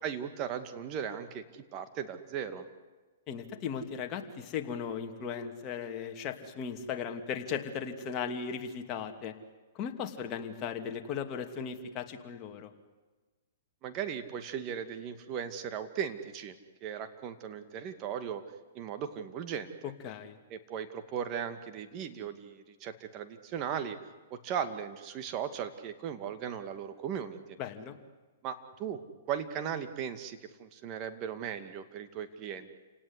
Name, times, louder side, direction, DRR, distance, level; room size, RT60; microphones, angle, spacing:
voice 1, 0.0-1.4 1.7-2.6 13.8-18.4 18.7-19.7 20.5-24.0 24.3-27.4 28.4-29.0 29.3-32.7, right 8 dB, 35° right, 8 dB, 2.4 m, -37 dB
voice 2, 3.3-9.3 9.7-12.7 19.8-20.4 27.6-28.0, left 7 dB, 30° left, 4 dB, 2.7 m, -37 dB
29.0 x 18.5 x 9.9 m, 1.3 s
hypercardioid pair, 135°, 0 cm